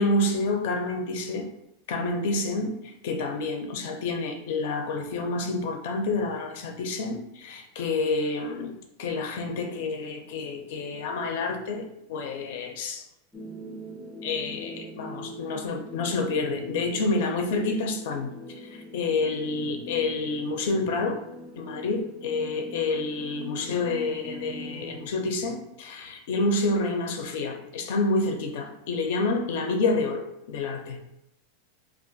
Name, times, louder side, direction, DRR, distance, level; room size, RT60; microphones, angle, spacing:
voice 1, 0.0-1.5 1.9-13.1 14.2-21.2 21.5-31.0, left 3 dB, 65° left, 4 dB, 0.5 m, -28 dB
sound 1, 13.3-25.1, left 1 dB, 5° right, 0.4 m, -42 dB
2.4 x 2.1 x 3.9 m, 0.84 s
supercardioid pair, 135°, 0 cm